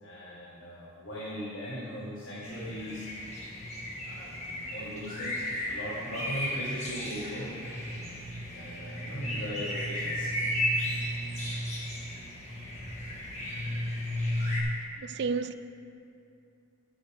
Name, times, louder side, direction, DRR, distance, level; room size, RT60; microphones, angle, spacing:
voice 1, 0.0-3.1 4.0-7.6 8.5-10.3, equal, 65° left, 1.8 m, -39 dB
sound 1, 2.4-14.6, equal, 35° left, 1.7 m, -34 dB
voice 2, 15.0-15.5, right 5 dB, 55° right, 0.3 m, -31 dB
14.0 x 7.8 x 3.7 m
head